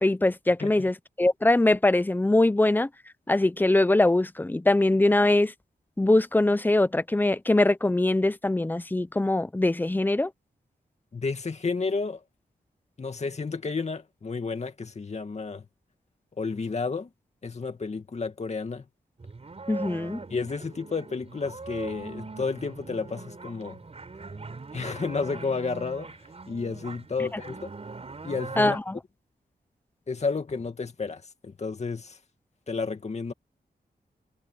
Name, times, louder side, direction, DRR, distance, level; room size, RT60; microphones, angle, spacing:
voice 1, 0.0-2.9 3.3-5.5 6.0-10.3 19.7-20.2 27.3-27.4 28.6-29.0, left 2 dB, 10° left, 0.7 m, -22 dB
voice 2, 11.1-12.2 13.0-15.6 16.4-17.1 17.4-18.9 20.3-23.8 24.7-26.1 26.5-27.7 28.2-28.8 30.1-32.2 32.7-33.3, left 4 dB, 40° left, 2.3 m, -31 dB
sound 1, 19.2-28.8, right 3 dB, 40° right, 4.4 m, -41 dB
wide cardioid pair, 130°, 17 cm